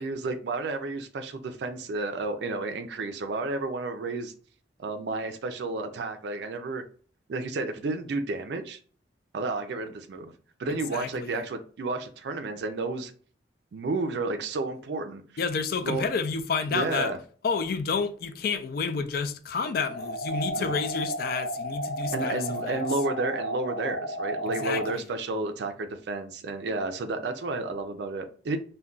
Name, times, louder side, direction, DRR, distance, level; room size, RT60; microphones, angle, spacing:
voice 1, 0.0-4.3 4.8-6.8 7.3-8.8 9.3-10.3 10.6-13.1 13.7-15.2 15.8-16.1 16.7-17.2 20.5-20.8 22.1-28.6, right 3 dB, 70° right, 0.4 m, -31 dB
voice 2, 10.7-11.4 15.4-17.1 17.4-22.8 24.5-25.0, left 5 dB, 55° left, 0.3 m, -30 dB
sound 1, 19.9-24.9, right 1 dB, 90° left, 0.7 m, -33 dB
2.3 x 2.2 x 3.7 m
head